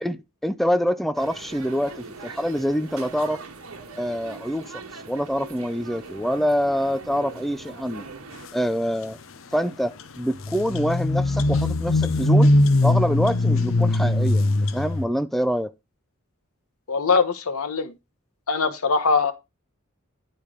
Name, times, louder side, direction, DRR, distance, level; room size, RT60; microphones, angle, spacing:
voice 1, 0.0-3.4 4.0-8.0 8.5-9.2 9.5-12.5 12.8-15.7, equal, ahead, 0.4 m, -26 dB
sound 1, 1.2-8.5, right 4 dB, 80° right, 1.5 m, -41 dB
sound 2, 10.0-10.1 10.4-15.1, left 2 dB, 65° left, 0.7 m, -20 dB
voice 2, 16.9-17.9 18.5-19.3, left 4 dB, 85° left, 1.1 m, -22 dB
10.5 x 4.5 x 4.9 m
head